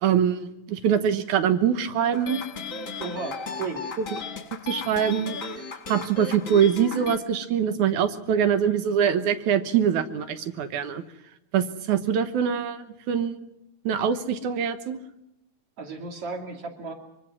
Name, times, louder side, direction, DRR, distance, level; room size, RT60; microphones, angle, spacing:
voice 1, 0.0-2.4 4.6-5.4 5.9-11.0 11.5-13.4 13.8-15.0, right 8 dB, 80° right, 10 dB, 2.6 m, -24 dB
sound 1, 2.1-7.2, left 4 dB, 35° left, 1.4 m, -35 dB
voice 2, 3.0-3.9 15.8-16.9, right 4 dB, 50° right, 3 dB, 3.5 m, -34 dB
24.5 x 23.5 x 6.1 m, 0.86 s
omnidirectional pair, 3.4 m